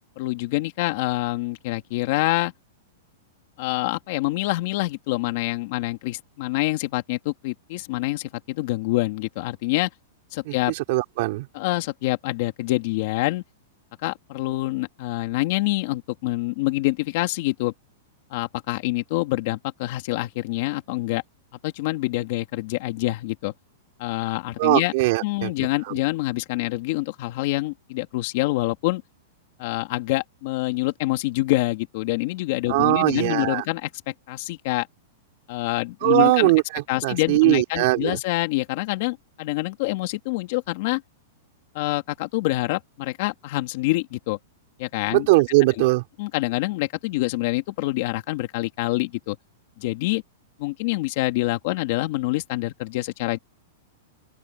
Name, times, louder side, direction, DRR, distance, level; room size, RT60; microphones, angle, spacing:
voice 1, 0.2-2.5 3.6-9.9 10.3-10.7 11.5-13.4 14.0-17.7 18.3-21.2 21.6-23.5 24.0-24.9 25.2-29.0 29.6-34.9 35.5-36.5 36.9-41.0 41.7-44.4 44.8-45.3 45.8-45.9 46.2-49.4 49.8-50.2 50.6-53.4, left 19 dB, 45° left, 2.6 m, -26 dB
voice 2, 10.5-11.5 24.6-25.5 25.8-25.9 32.7-33.6 36.0-38.2 45.1-46.0, right 22 dB, 45° right, 3.6 m, -20 dB
open air
supercardioid pair, 170°, 0 cm